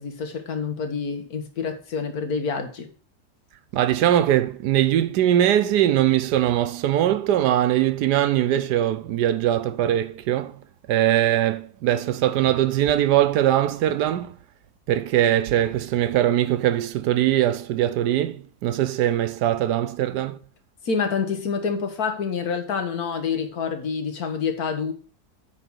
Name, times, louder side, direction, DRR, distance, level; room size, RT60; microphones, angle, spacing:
voice 1, 0.0-2.9 20.8-24.9, left 5 dB, 65° left, 1.7 m, -27 dB
voice 2, 3.7-10.6 10.9-14.4 14.9-20.4, right 12 dB, 75° right, 1.2 m, -21 dB
8.9 x 4.0 x 6.2 m
omnidirectional pair, 1.8 m